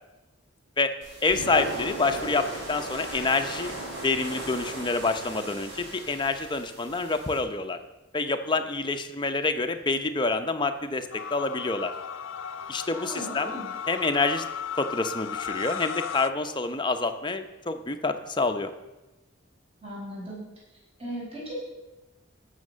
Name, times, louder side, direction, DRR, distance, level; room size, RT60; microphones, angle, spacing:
sound 1, 1.0-7.4, right 2 dB, 75° right, 5.4 m, -37 dB
voice 1, 1.2-3.7 4.0-7.8 8.1-11.9 12.7-13.5 13.9-14.4 14.8-18.7, left 3 dB, 25° left, 7 dB, 0.8 m, -27 dB
sound 2, 11.1-16.3, left 8 dB, 85° left, 0.5 m, -36 dB
voice 2, 12.9-13.7 19.8-20.4 21.0-21.5, right 1 dB, 30° right, -6 dB, 5.3 m, -37 dB
16.0 x 6.5 x 6.3 m, 1.1 s
head